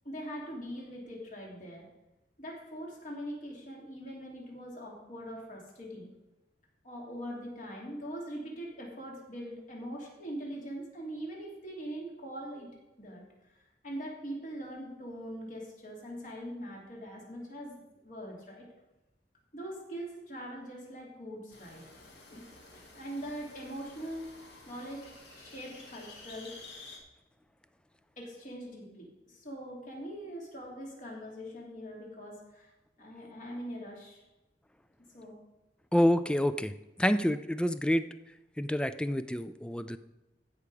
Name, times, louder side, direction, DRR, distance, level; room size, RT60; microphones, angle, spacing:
voice 1, 0.0-1.9 2.4-6.1 6.8-12.7 13.0-13.2 13.5-13.6 13.8-17.8 18.0-18.7 19.5-21.8 22.3-22.4 22.7-24.3 24.7-26.5 28.2-32.7 33.0-34.2 35.1-35.4, equal, 45° left, -2 dB, 3.0 m, -42 dB
sound 1, 21.5-27.0, left 3 dB, 80° left, 2.2 m, -51 dB
voice 2, 35.9-36.7 37.0-38.1 38.6-40.0, equal, 5° left, 12 dB, 0.3 m, -27 dB
15.0 x 5.9 x 4.9 m, 1.0 s
head